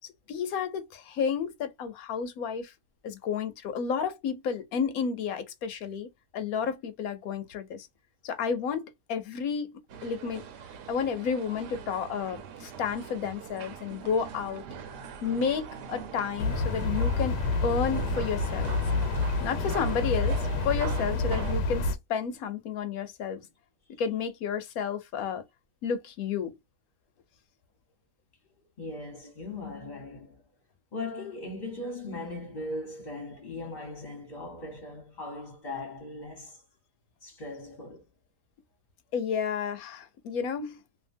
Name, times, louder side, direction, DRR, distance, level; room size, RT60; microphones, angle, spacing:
voice 1, 0.3-2.7 3.0-7.9 8.2-10.4 10.9-14.6 15.2-18.7 19.4-23.5 24.0-25.4 25.8-26.5 39.1-40.8, left 6 dB, 70° left, 1.0 m, -31 dB
sound 1, 9.9-21.6, right 7 dB, 80° right, 1.2 m, -42 dB
sound 2, 16.4-22.0, left 3 dB, 85° left, 1.2 m, -28 dB
voice 2, 28.6-30.4 30.9-36.6 37.2-38.0, left 2 dB, 35° left, 0.8 m, -39 dB
2.8 x 2.4 x 2.5 m
omnidirectional pair, 1.8 m